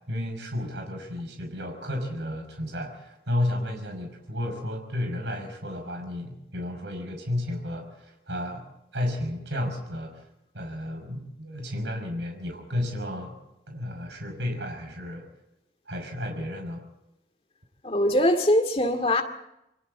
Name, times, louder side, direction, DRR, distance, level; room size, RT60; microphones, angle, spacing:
voice 1, 0.1-8.7 8.9-10.2 10.5-13.4 13.7-15.3 15.9-16.8, left 1 dB, 85° right, 5.7 m, -32 dB
voice 2, 17.8-19.2, left 1 dB, 30° left, 2.2 m, -22 dB
28.5 x 24.0 x 4.0 m
head